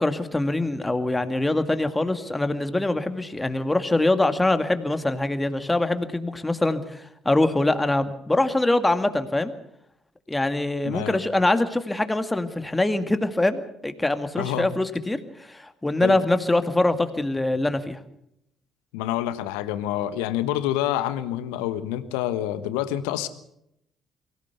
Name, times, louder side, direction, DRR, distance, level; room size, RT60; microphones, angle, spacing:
voice 1, 0.0-9.5 10.3-18.0, left 2 dB, 15° left, 9 dB, 2.1 m, -24 dB
voice 2, 10.8-11.2 14.4-14.7 16.0-16.2 18.9-23.3, left 12 dB, 75° left, 12 dB, 1.3 m, -27 dB
23.5 x 16.5 x 6.9 m, 0.78 s
hypercardioid pair, 50°, 0 cm